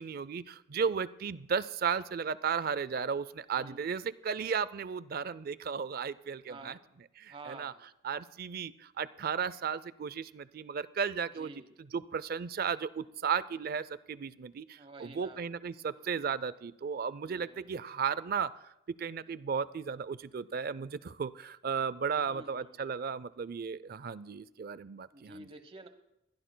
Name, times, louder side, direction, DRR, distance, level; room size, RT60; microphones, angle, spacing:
voice 1, 0.0-6.8 7.2-7.7 8.0-11.5 11.8-25.5, right 6 dB, 45° right, 18 dB, 0.4 m, -35 dB
voice 2, 6.5-6.8 7.3-7.8 11.4-11.7 14.8-15.4 17.2-17.7 22.1-23.1 25.1-25.9, right 2 dB, 25° right, 9 dB, 0.9 m, -50 dB
21.5 x 16.0 x 2.2 m, 0.86 s
head